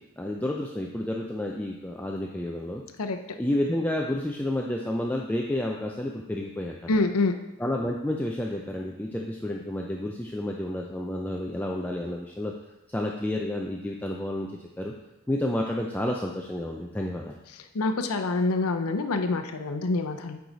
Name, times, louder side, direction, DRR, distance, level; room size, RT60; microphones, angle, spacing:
voice 1, 0.2-2.8 3.4-6.8 7.6-12.5 12.9-14.9 15.3-17.4, left 1 dB, 10° left, -1 dB, 0.4 m, -30 dB
voice 2, 6.9-7.3 17.7-20.4, left 3 dB, 80° left, 6 dB, 0.6 m, -26 dB
8.7 x 4.7 x 4.0 m, 0.98 s
head